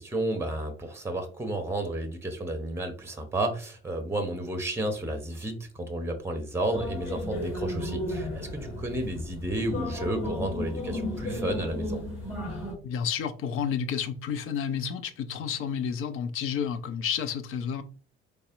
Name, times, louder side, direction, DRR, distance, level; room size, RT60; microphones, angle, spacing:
voice 1, 0.0-12.0, right 1 dB, 10° right, 0.8 m, -32 dB
sound 1, 6.7-12.7, left 1 dB, 80° left, 1.3 m, -34 dB
voice 2, 12.8-17.8, left 7 dB, 45° left, 0.5 m, -30 dB
4.1 x 3.2 x 2.5 m
figure-of-eight pair, 50°, 30 cm